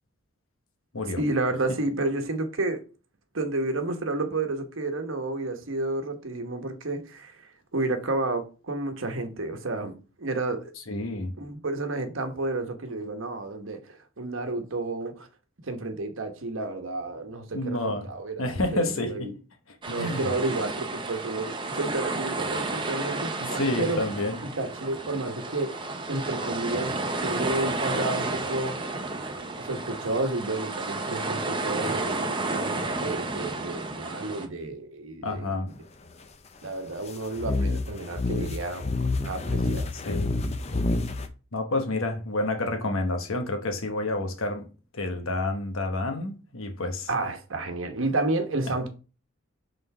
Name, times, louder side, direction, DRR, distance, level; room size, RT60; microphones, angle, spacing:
voice 1, 1.2-2.8 3.3-9.9 10.2-10.7 11.4-15.3 15.6-18.3 18.7-19.3 19.9-24.0 24.4-25.8 26.1-26.9 27.2-28.9 29.6-35.7 36.6-38.9 39.2-39.9 47.1-48.9, right 2 dB, 75° right, 1.1 m, -31 dB
voice 2, 10.9-11.3 17.5-18.1 18.4-19.3 20.0-20.3 23.4-24.4 35.2-35.7 40.1-40.4 41.5-44.7 44.9-47.1, left 2 dB, 85° left, 1.1 m, -29 dB
sound 1, 19.8-34.5, right 2 dB, 25° right, 0.7 m, -31 dB
sound 2, 37.4-41.3, left 3 dB, 30° left, 0.6 m, -28 dB
5.6 x 3.8 x 4.8 m
head